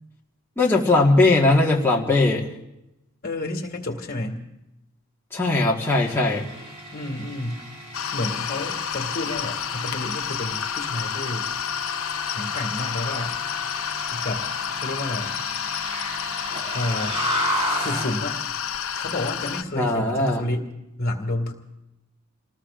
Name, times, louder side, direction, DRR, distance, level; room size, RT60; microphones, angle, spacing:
voice 1, 0.6-2.5 5.3-6.5 19.7-20.4, left 2 dB, 10° left, -4 dB, 1.6 m, -19 dB
voice 2, 3.2-4.4 6.9-7.6 8.1-11.5 12.3-13.4 14.1-14.5 14.8-15.4 16.7-17.2 17.7-18.4 19.0-20.7 21.0-21.5, left 1 dB, 45° left, 3 dB, 2.0 m, -30 dB
sound 1, 5.8-18.2, equal, 30° right, 7.5 m, -34 dB
sound 2, 7.9-19.6, left 8 dB, 65° left, 0.8 m, -30 dB
29.0 x 19.5 x 2.5 m, 0.91 s
head